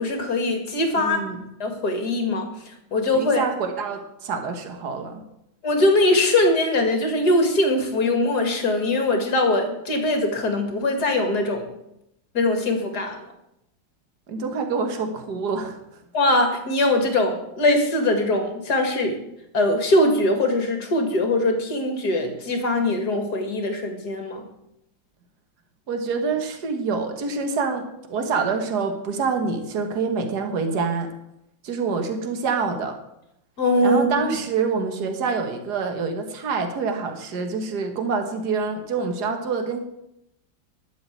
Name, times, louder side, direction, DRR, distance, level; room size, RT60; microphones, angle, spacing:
voice 1, 0.0-1.2 1.6-2.5 2.9-3.5 5.6-11.7 12.3-13.2 16.1-19.2 19.5-24.4 33.6-34.1, left 2 dB, 55° left, 5 dB, 2.5 m, -21 dB
voice 2, 0.9-1.4 3.1-5.2 14.3-15.8 25.9-31.1 31.6-33.0 33.8-39.8, right 4 dB, 55° right, 5 dB, 2.0 m, -26 dB
12.0 x 6.8 x 9.2 m, 0.82 s
omnidirectional pair, 2.1 m